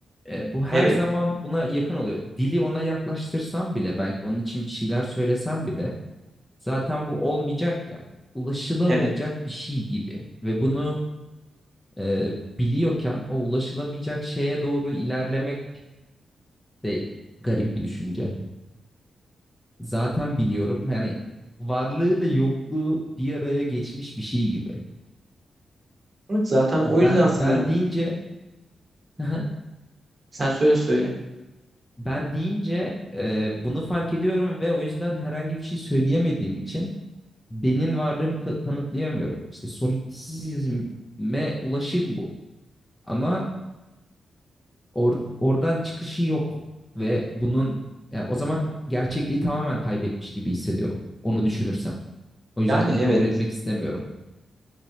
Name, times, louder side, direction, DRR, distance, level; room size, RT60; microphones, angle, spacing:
voice 1, 0.3-5.9 6.6-8.0 8.3-11.1 12.0-15.6 16.8-17.1 17.4-18.3 19.8-21.2 21.6-24.6 26.9-28.2 29.2-29.5 32.0-36.9 37.5-39.4 39.6-40.9 41.2-42.3 43.1-43.5 44.9-46.6 46.9-47.8 48.1-51.0 51.2-51.9 52.6-54.0, equal, 10° left, -3 dB, 0.5 m, -26 dB
voice 2, 26.3-27.6 30.3-31.1 52.7-53.2, equal, 35° right, -2 dB, 0.9 m, -20 dB
4.0 x 3.0 x 2.7 m, 1.0 s
wide cardioid pair, 140°, 0 cm